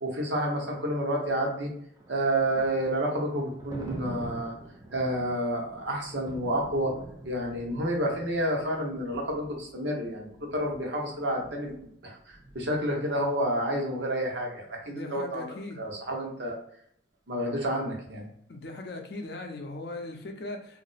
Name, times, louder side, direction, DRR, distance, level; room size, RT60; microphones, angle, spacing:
voice 1, 0.0-1.7 2.1-4.5 4.9-6.9 7.2-15.5 15.8-16.6 17.3-18.3, right 1 dB, 70° right, 0 dB, 0.9 m, -30 dB
Thunder, 1.5-13.3, right 1 dB, 20° right, 0.4 m, -45 dB
voice 2, 14.8-15.8 18.5-20.8, left 2 dB, 55° left, 3 dB, 0.5 m, -39 dB
2.5 x 2.0 x 3.9 m, 0.67 s
head